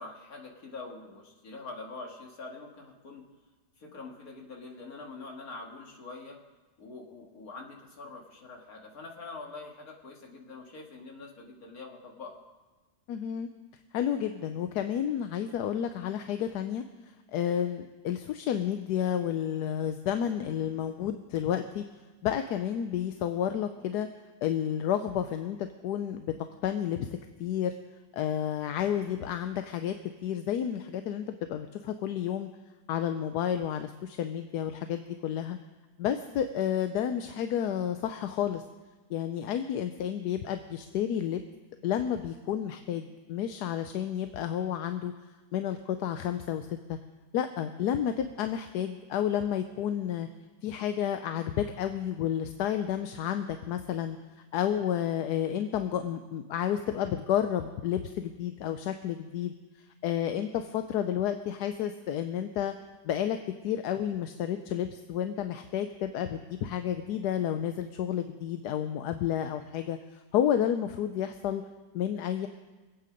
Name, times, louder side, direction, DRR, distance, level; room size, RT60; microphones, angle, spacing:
voice 1, 0.0-3.2 3.8-6.4 6.8-12.4, left 3 dB, 55° left, 1 dB, 2.4 m, -44 dB
voice 2, 13.1-13.5 13.9-16.8 17.3-21.8 22.2-24.1 24.4-26.3 26.6-27.1 27.4-27.7 28.1-29.9 30.2-32.5 32.9-35.6 36.0-38.6 39.1-41.4 41.8-45.1 45.5-47.0 47.3-50.3 50.6-54.2 54.5-59.5 60.0-62.7 63.0-63.4 63.6-71.6 71.9-72.5, left 10 dB, 70° left, 8 dB, 1.1 m, -31 dB
24.0 x 8.7 x 5.1 m, 1.3 s
omnidirectional pair, 1.9 m